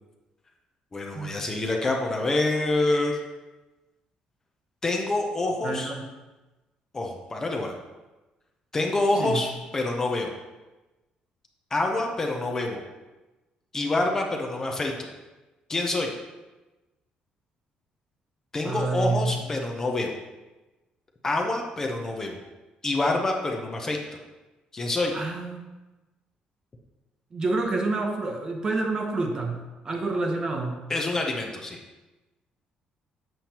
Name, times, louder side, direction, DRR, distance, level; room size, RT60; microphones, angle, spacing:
voice 1, 0.9-3.2 4.8-5.9 6.9-7.7 8.7-10.3 11.7-12.8 13.7-14.9 15.7-16.1 18.5-20.1 21.2-22.4 22.8-24.0 24.7-25.1 30.9-31.8, left 2 dB, 20° left, 1 dB, 0.6 m, -26 dB
voice 2, 5.6-6.0 9.2-9.4 18.6-19.4 25.1-25.7 27.3-30.8, right 3 dB, 30° right, 3 dB, 0.8 m, -28 dB
7.6 x 6.8 x 2.9 m, 1.1 s
cardioid pair, 170°, 3 cm